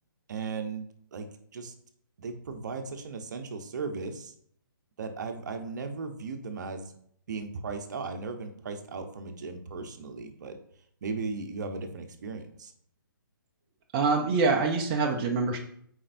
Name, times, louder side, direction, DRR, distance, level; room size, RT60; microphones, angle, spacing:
voice 1, 0.3-1.7 2.2-4.3 5.0-6.9 7.3-10.6 11.0-12.7, right 4 dB, 50° right, 6 dB, 0.8 m, -37 dB
voice 2, 13.9-15.6, right 4 dB, 25° right, 1 dB, 0.6 m, -25 dB
8.6 x 4.4 x 2.6 m, 0.67 s
hypercardioid pair, 155°, 12 cm